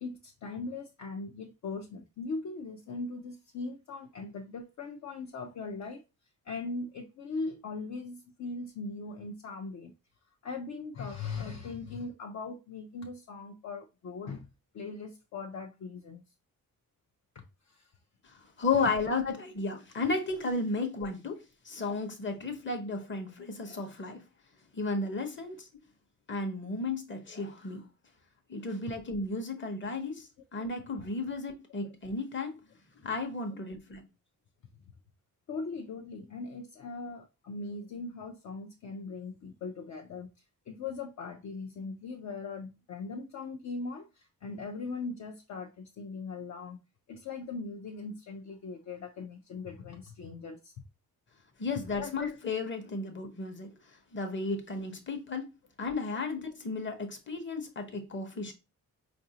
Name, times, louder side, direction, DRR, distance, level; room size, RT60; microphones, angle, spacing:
voice 1, 0.0-6.0 6.4-9.9 10.4-14.5 14.7-16.2 17.3-17.9 33.5-33.6 35.5-40.3 40.7-46.8 47.1-50.7 52.0-52.1, left 3 dB, 55° left, 0.5 m, -40 dB
voice 2, 18.2-24.2 24.7-25.7 26.3-27.8 28.5-32.6 33.0-34.0 51.6-53.7 54.1-55.5 55.8-58.5, left 3 dB, 35° left, 0.8 m, -34 dB
4.8 x 2.6 x 2.7 m
wide cardioid pair, 140°, 34 cm